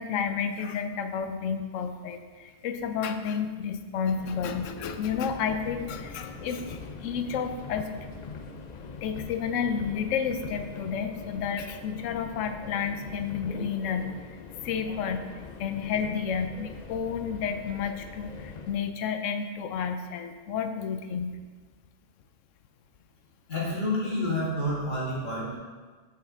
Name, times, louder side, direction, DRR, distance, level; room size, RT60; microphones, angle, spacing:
voice 1, 0.0-7.9 9.0-14.4 14.6-15.3 15.6-21.4, left 6 dB, 85° left, 8 dB, 0.9 m, -31 dB
Subway metro underground, 4.0-18.9, left 4 dB, 60° left, 0.4 m, -42 dB
voice 2, 23.5-25.6, left 1 dB, 40° left, -6 dB, 1.9 m, -29 dB
6.4 x 5.7 x 3.7 m, 1.5 s
omnidirectional pair, 1.3 m